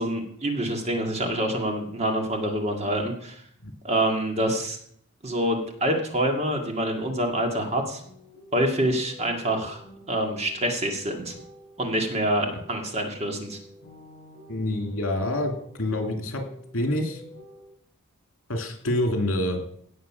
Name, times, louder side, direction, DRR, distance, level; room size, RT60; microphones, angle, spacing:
voice 1, 0.0-3.4 3.8-4.8 5.2-8.0 8.5-9.8 10.1-11.4 11.8-13.6, right 1 dB, 30° right, 3 dB, 1.9 m, -26 dB
sound 1, 8.0-17.7, left 1 dB, 50° left, 5.9 m, -49 dB
voice 2, 14.5-16.4 16.7-17.2 18.5-19.6, left 1 dB, 70° left, 4 dB, 2.7 m, -27 dB
17.5 x 6.6 x 6.0 m, 0.66 s
head